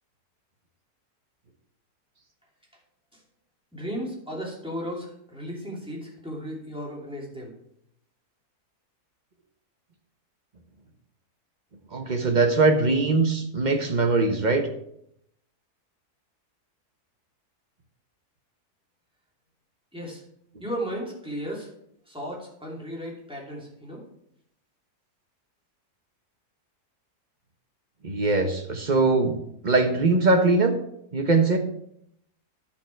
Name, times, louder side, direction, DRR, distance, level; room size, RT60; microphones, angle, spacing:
voice 1, 3.7-7.5 19.9-20.2 20.6-21.7 22.1-24.0, equal, 5° right, -3 dB, 2.6 m, -35 dB
voice 2, 11.9-14.7 28.0-30.7 31.1-31.6, right 3 dB, 35° right, 5 dB, 1.0 m, -21 dB
10.5 x 7.3 x 4.5 m, 0.74 s
omnidirectional pair, 1.7 m